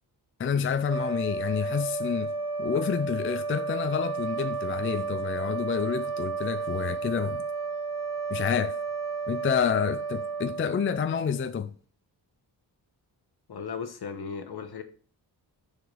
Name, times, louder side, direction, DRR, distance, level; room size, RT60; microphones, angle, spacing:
voice 1, 0.4-7.4 8.3-8.8 9.3-11.7, left 7 dB, 30° left, 0.4 m, -29 dB
sound 1, 0.8-11.4, right 4 dB, 5° right, 2.5 m, -32 dB
voice 2, 13.5-14.8, left 6 dB, 65° left, 1.2 m, -36 dB
7.0 x 4.9 x 5.3 m
wide cardioid pair, 135°, 41 cm